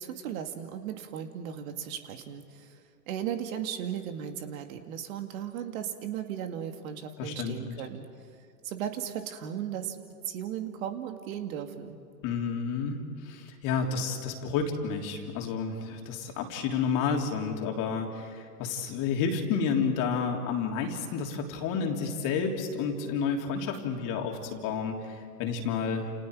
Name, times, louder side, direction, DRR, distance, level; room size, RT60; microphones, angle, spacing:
voice 1, 0.0-2.8 3.1-8.0 8.6-10.0 10.2-12.0, right 9 dB, 55° right, 6 dB, 2.2 m, -36 dB
voice 2, 7.2-7.8 12.2-26.1, left 5 dB, 40° left, 2 dB, 3.4 m, -30 dB
30.0 x 29.0 x 4.9 m, 2.2 s
hypercardioid pair, 115°, 50 cm